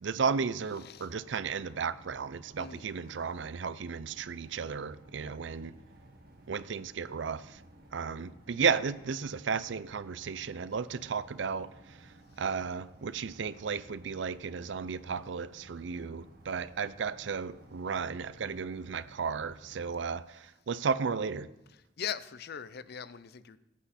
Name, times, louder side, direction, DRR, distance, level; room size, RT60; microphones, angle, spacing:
voice 1, 0.0-5.7 6.5-7.4 7.9-11.7 12.4-21.5, right 5 dB, 70° right, 0.5 m, -34 dB
voice 2, 0.8-1.1 2.6-2.9 22.0-23.6, left 8 dB, 55° left, 0.5 m, -40 dB
sound 1, 0.9-20.1, right 1 dB, 55° right, 1.6 m, -56 dB
16.5 x 8.4 x 4.2 m
head